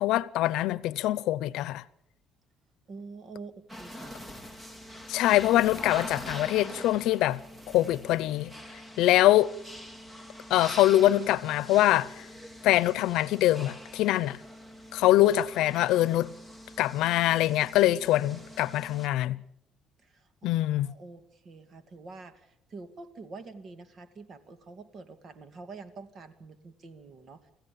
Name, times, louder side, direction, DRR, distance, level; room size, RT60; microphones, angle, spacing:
voice 1, 0.0-1.8 5.1-7.4 7.7-8.5 9.0-9.5 10.5-12.2 12.6-14.4 14.9-16.3 16.8-19.4 20.4-20.9, left 15 dB, 80° left, 0.8 m, -24 dB
voice 2, 2.9-4.1 20.0-27.4, right 3 dB, 40° right, 2.3 m, -46 dB
sound 1, 3.7-19.1, equal, 15° right, 2.8 m, -44 dB
26.0 x 15.5 x 8.7 m
cardioid pair, 135°, 0 cm